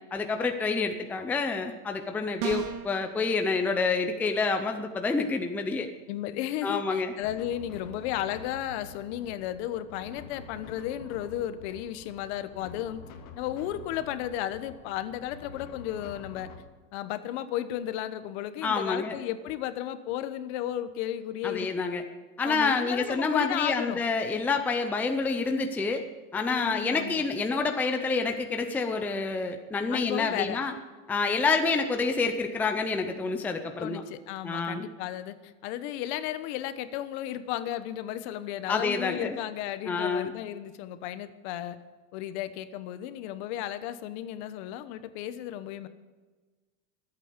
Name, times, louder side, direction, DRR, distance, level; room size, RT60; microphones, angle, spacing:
voice 1, 0.1-5.9 6.6-7.1 18.6-19.2 21.4-22.0 22.4-26.0 26.3-30.7 31.1-34.0 34.4-34.9 38.7-39.4 39.9-40.3, left 4 dB, 5° left, 5 dB, 0.5 m, -28 dB
sound 1, 2.4-2.9, right 7 dB, 65° right, 1.8 m, -32 dB
voice 2, 6.1-13.0 13.4-16.5 16.9-21.7 22.4-24.0 26.5-27.3 29.9-30.6 33.8-41.8 42.1-45.9, left 12 dB, 60° left, 12 dB, 1.1 m, -34 dB
sound 2, 7.2-16.6, left 4 dB, 45° left, 2.0 m, -47 dB
24.5 x 8.5 x 5.2 m, 1.3 s
cardioid pair, 170°, 38 cm